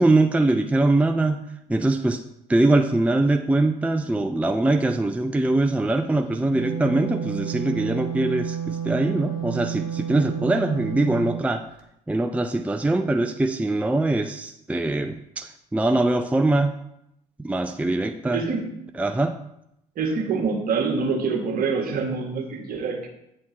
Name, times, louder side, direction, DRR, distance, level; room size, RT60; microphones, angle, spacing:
voice 1, 0.0-1.4 1.7-2.2 2.5-11.6 12.1-16.7 17.4-18.4 19.0-19.3, right 2 dB, 5° right, 6 dB, 0.5 m, -22 dB
Wind instrument woodwind instrument, 6.3-11.5, right 7 dB, 75° left, 1.0 m, -31 dB
voice 2, 18.3-18.7 20.0-23.1, right 4 dB, 55° right, 2 dB, 1.9 m, -25 dB
8.7 x 4.3 x 5.9 m, 0.81 s
hypercardioid pair, 55°, 18 cm